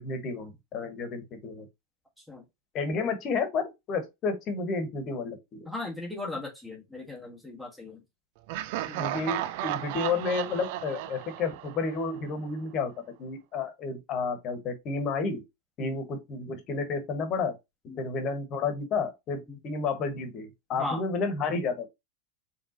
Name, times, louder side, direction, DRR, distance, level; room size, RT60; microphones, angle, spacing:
voice 1, 0.0-1.7 2.7-5.7 9.0-12.9 13.2-15.4 15.8-17.5 18.0-21.9, left 4 dB, 35° left, 1.3 m, -31 dB
voice 2, 5.6-8.0 8.9-9.0 15.8-16.0 17.9-18.0 19.5-19.6 20.7-21.0, left 2 dB, ahead, 1.4 m, -37 dB
Laughter, 8.5-12.4, right 13 dB, 50° right, 0.3 m, -34 dB
4.8 x 3.4 x 2.8 m
figure-of-eight pair, 85°, 0 cm